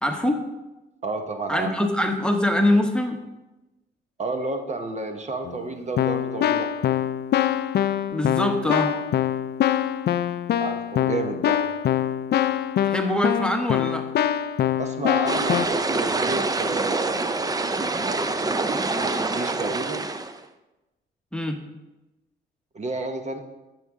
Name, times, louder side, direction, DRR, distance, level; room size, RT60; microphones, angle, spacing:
voice 1, 0.0-0.4 1.5-3.3 8.1-9.0 12.8-14.1 21.3-21.6, left 1 dB, 5° left, 4 dB, 1.1 m, -23 dB
voice 2, 1.0-1.7 4.2-6.7 10.6-11.6 14.8-17.5 18.0-20.1 22.7-23.4, right 3 dB, 35° right, 5 dB, 0.9 m, -31 dB
Keyboard (musical), 5.4-5.6 6.0-15.7, left 10 dB, 55° left, 0.5 m, -24 dB
sound 1, 15.3-20.4, right 3 dB, 20° right, 0.6 m, -26 dB
13.5 x 6.2 x 3.7 m, 1.0 s
cardioid pair, 90°, 20 cm